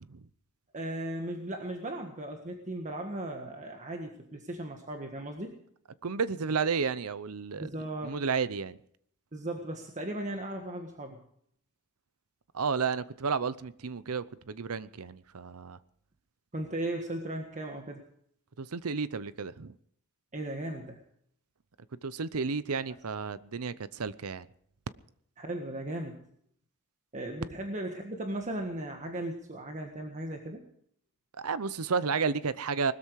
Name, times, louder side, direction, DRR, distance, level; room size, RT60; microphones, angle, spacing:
voice 1, 0.7-5.5 7.6-8.1 9.3-11.2 16.5-18.0 20.3-21.0 25.4-26.2 27.1-30.6, right 1 dB, 35° right, 1.6 m, -37 dB
voice 2, 6.0-7.7 8.0-8.8 12.5-15.8 18.6-19.7 22.0-24.5 31.4-32.9, right 5 dB, 75° right, 0.7 m, -32 dB
20.5 x 13.0 x 4.8 m
head